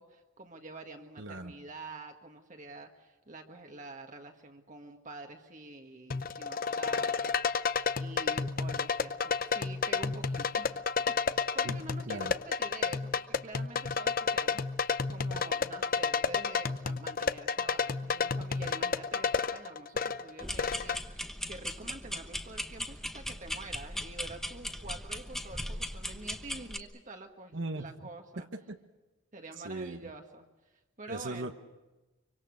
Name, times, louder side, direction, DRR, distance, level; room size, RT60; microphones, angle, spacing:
voice 1, 0.0-7.7 8.0-28.5 29.3-31.5, right 2 dB, 40° right, 4 dB, 1.7 m, -47 dB
voice 2, 1.2-1.5 11.6-11.8 12.1-12.3 27.5-28.1 28.4-28.8 29.6-30.0 31.1-31.5, right 2 dB, 70° right, 7 dB, 1.3 m, -38 dB
sound 1, 6.1-21.0, left 5 dB, 45° left, 0.7 m, -31 dB
sound 2, 20.4-26.8, left 1 dB, ahead, 1.0 m, -39 dB
26.0 x 24.5 x 6.5 m, 1.1 s
head